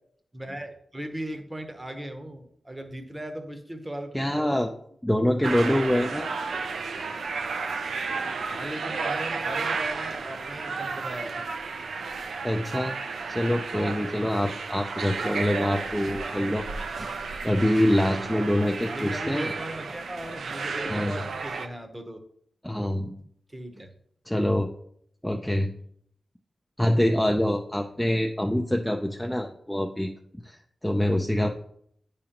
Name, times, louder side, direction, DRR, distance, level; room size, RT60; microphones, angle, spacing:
voice 1, 0.3-4.6 8.4-11.4 15.0-15.3 18.6-22.2 23.5-23.9, right 1 dB, 15° right, 6 dB, 0.8 m, -38 dB
voice 2, 4.1-4.7 5.0-6.3 12.4-12.9 13.3-16.7 17.0-17.1 17.4-19.5 20.9-21.2 22.6-23.1 24.3-24.7 25.2-25.7 26.8-30.1 30.4-31.5, left 1 dB, 5° left, 3 dB, 0.4 m, -25 dB
sound 1, 5.4-21.7, right 4 dB, 80° right, 0.5 m, -33 dB
9.3 x 5.1 x 2.9 m, 0.68 s
wide cardioid pair, 145°, 0 cm